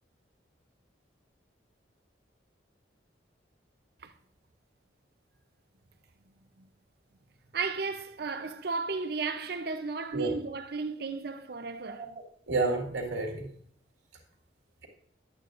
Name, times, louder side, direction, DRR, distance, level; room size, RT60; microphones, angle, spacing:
voice 1, 7.5-12.0, right 4 dB, 55° right, 0.6 m, -34 dB
voice 2, 11.9-13.5, right 3 dB, 85° right, 2.0 m, -31 dB
11.0 x 9.0 x 2.5 m
head